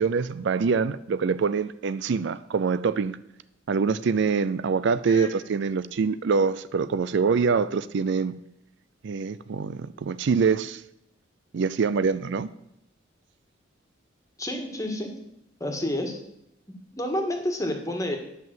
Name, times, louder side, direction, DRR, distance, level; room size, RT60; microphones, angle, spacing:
voice 1, 0.0-3.2 3.7-8.3 9.0-10.8 11.5-12.5, right 5 dB, 65° right, 15 dB, 0.4 m, -25 dB
voice 2, 14.4-15.1 15.6-16.2 16.9-18.2, left 1 dB, 15° left, 3 dB, 1.7 m, -29 dB
10.5 x 5.7 x 7.6 m, 0.80 s
head